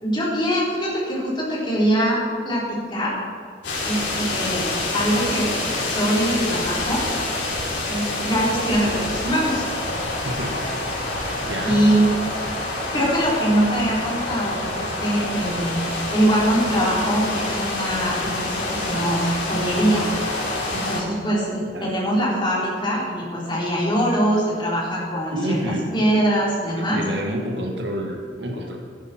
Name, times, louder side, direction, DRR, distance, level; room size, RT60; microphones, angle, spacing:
voice 1, 0.0-3.1 3.8-7.0 7.8-9.6 11.6-12.0 12.9-15.8 16.1-20.1 20.7-25.6 25.9-27.0, equal, 25° left, -6 dB, 4.0 m, -23 dB
sound 1, 3.6-21.0, left 2 dB, 90° left, 4.0 m, -27 dB
voice 2, 10.2-10.6 11.5-11.9 21.7-21.9 25.3-25.9 26.7-28.8, right 1 dB, 70° right, 1 dB, 1.9 m, -28 dB
14.5 x 11.0 x 4.5 m, 2.1 s
head